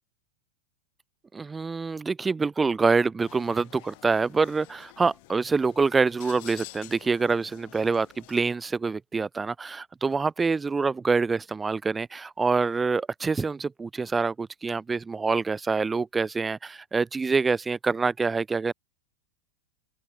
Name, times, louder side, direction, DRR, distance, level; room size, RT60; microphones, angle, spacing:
voice 1, 1.3-18.7, right 4 dB, 15° right, 0.6 m, -26 dB
sound 1, 3.2-8.5, left 27 dB, 50° left, 1.7 m, -49 dB
open air
figure-of-eight pair, 90°, 0 cm